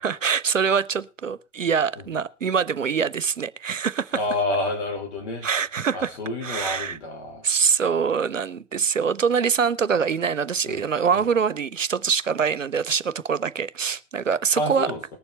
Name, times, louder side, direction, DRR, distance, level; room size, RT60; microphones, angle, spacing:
voice 1, 0.0-4.4 5.4-6.1 6.4-7.0 7.4-14.9, right 6 dB, 85° right, 0.6 m, -24 dB
voice 2, 4.1-5.5 5.9-7.4 10.7-10.9 11.1-11.2 14.5-15.0, left 2 dB, 60° left, 4.5 m, -29 dB
20.0 x 7.0 x 4.2 m
figure-of-eight pair, 85°, 37 cm